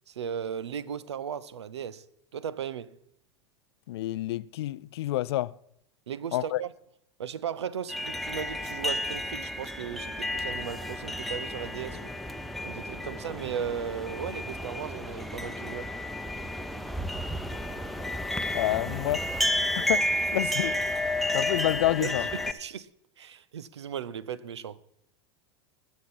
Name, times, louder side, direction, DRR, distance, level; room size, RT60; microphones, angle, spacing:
voice 1, 0.1-2.1 2.3-3.0 6.1-6.7 7.2-12.1 12.6-15.9 22.0-22.9 23.2-24.8, right 8 dB, 80° right, 0.6 m, -36 dB
voice 2, 3.9-5.5 6.3-6.6 18.5-19.2 19.9-20.8 21.3-22.3, left 15 dB, 70° left, 0.4 m, -28 dB
sound 1, 7.9-22.5, left 1 dB, ahead, 0.8 m, -32 dB
20.0 x 7.0 x 4.1 m
hypercardioid pair, 85°, 14 cm